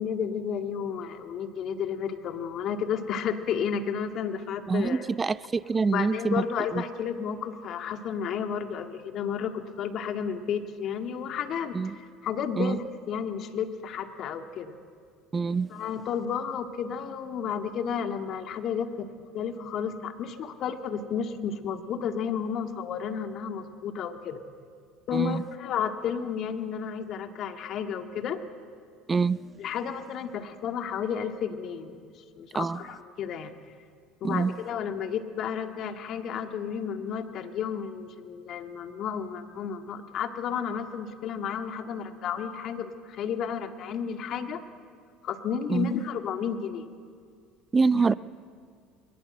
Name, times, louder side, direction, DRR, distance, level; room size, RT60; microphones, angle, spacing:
voice 1, 0.0-5.1 5.9-14.8 15.7-19.1 19.3-24.4 25.1-28.4 29.6-32.1 32.4-33.5 34.2-44.6 45.2-46.9 47.9-48.1, left 7 dB, 55° left, 6 dB, 1.9 m, -32 dB
voice 2, 4.7-6.4 6.7-6.8 11.7-12.0 12.6-12.8 15.3-15.7 25.1-25.4 29.1-29.4 32.5-32.8 34.2-34.5 45.7-45.9 47.7-48.1, right 4 dB, 25° right, 18 dB, 0.6 m, -25 dB
22.0 x 20.5 x 7.8 m, 2.1 s
hypercardioid pair, 70°, 0 cm